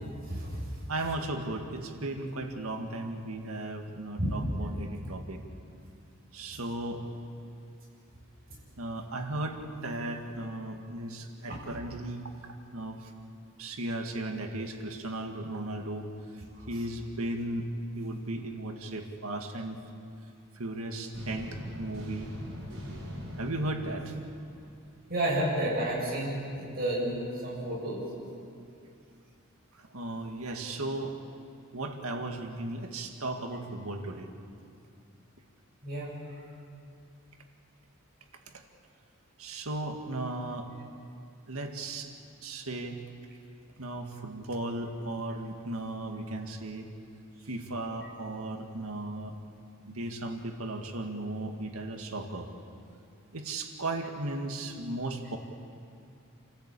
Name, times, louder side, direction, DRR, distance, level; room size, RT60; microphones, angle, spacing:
voice 1, 0.0-0.7 4.2-4.3 16.6-16.7 25.1-28.0 35.8-36.1, right 1 dB, 45° right, -4 dB, 7.4 m, -31 dB
voice 2, 0.9-5.4 6.3-7.1 8.8-13.1 13.6-16.1 16.7-17.7 17.9-19.8 20.5-22.3 23.3-24.2 29.7-31.2 31.7-34.3 38.5-38.6 39.4-40.7 41.5-42.1 42.4-43.0 43.8-46.9 47.5-49.4 49.9-52.5 53.3-55.4, right 2 dB, 85° right, 4 dB, 2.0 m, -36 dB
sound 1, 21.1-25.1, equal, 65° right, 7.2 m, -42 dB
28.0 x 16.0 x 8.4 m, 2.5 s
head